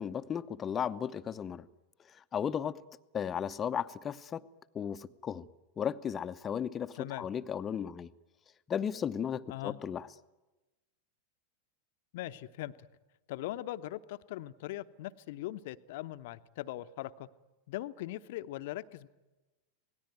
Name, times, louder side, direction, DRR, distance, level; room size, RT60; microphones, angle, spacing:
voice 1, 0.0-1.7 2.1-2.8 3.1-4.4 4.7-5.5 5.8-8.1 8.7-10.1, left 8 dB, 25° left, 13 dB, 0.8 m, -35 dB
voice 2, 6.9-7.3 9.5-9.8 12.1-12.7 13.3-17.3 17.7-19.1, left 15 dB, 50° left, 13 dB, 0.8 m, -40 dB
26.5 x 19.0 x 9.3 m, 1.1 s
figure-of-eight pair, 90°, 0 cm